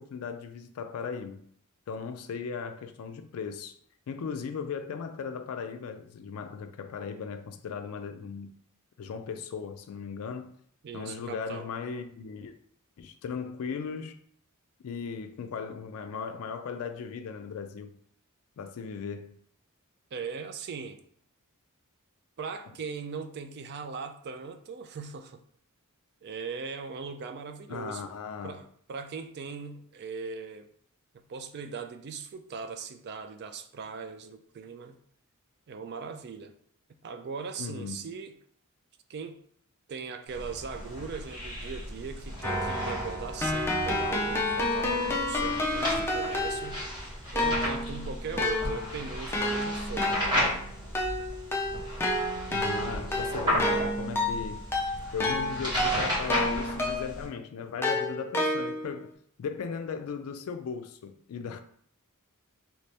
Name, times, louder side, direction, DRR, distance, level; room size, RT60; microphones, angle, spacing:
voice 1, 0.0-1.5 1.9-3.8 4.1-8.5 9.0-10.5 10.9-12.6 13.0-14.1 14.8-18.0 18.6-19.4 27.7-28.6 37.6-38.1 52.5-54.7 55.1-59.1 59.4-61.6, left 6 dB, 70° left, 0.3 m, -37 dB
voice 2, 10.8-11.7 20.1-21.0 22.4-25.4 26.2-28.0 28.4-30.7 31.3-35.0 35.7-36.5 37.0-38.3 39.1-39.4 39.9-46.8 47.3-50.5, right 5 dB, 50° right, 0.3 m, -39 dB
sound 1, 40.3-57.3, equal, 20° right, 1.3 m, -34 dB
Keyboard (musical), 42.4-46.9 47.4-57.3 57.8-59.0, left 1 dB, 10° left, 0.5 m, -30 dB
2.9 x 2.8 x 3.3 m
head